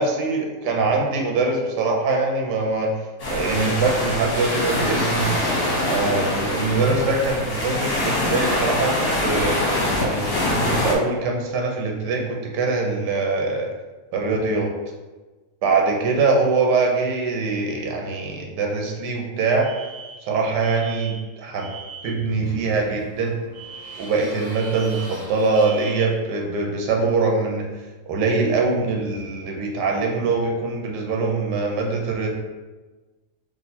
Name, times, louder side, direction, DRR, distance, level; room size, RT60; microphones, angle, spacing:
voice 1, 0.0-2.9 3.3-5.3 5.9-9.6 10.0-13.7 14.1-14.7 15.6-19.7 20.2-21.7 22.0-23.3 24.0-27.6 28.0-32.3, right 3 dB, 85° right, 1 dB, 1.3 m, -23 dB
sound 1, 3.2-10.9, left 1 dB, 45° left, 1.0 m, -24 dB
Alarm, 19.6-22.3 23.5-26.3, right 5 dB, 70° right, 1.3 m, -40 dB
sound 2, 21.7-27.3, equal, 30° right, 1.3 m, -44 dB
3.7 x 2.6 x 4.1 m, 1.2 s
omnidirectional pair, 1.7 m